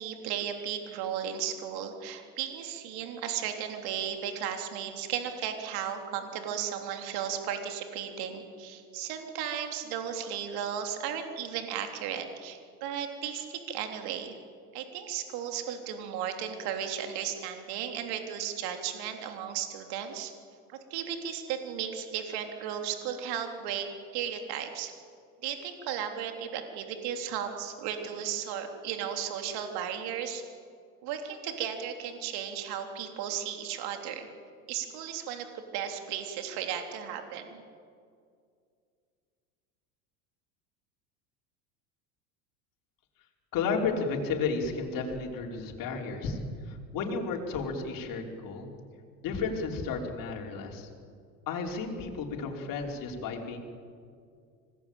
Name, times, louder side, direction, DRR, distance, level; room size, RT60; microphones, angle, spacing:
voice 1, 0.0-14.4 14.7-20.3 20.9-23.9 24.1-24.9 25.4-30.4 31.0-34.3 34.7-37.6, right 9 dB, 60° right, 5 dB, 3.6 m, -35 dB
voice 2, 43.5-46.4 46.6-48.7 49.2-50.9 51.5-53.6, left 4 dB, 50° left, 1 dB, 5.1 m, -32 dB
26.0 x 20.0 x 9.0 m, 2.2 s
hypercardioid pair, 85°, 44 cm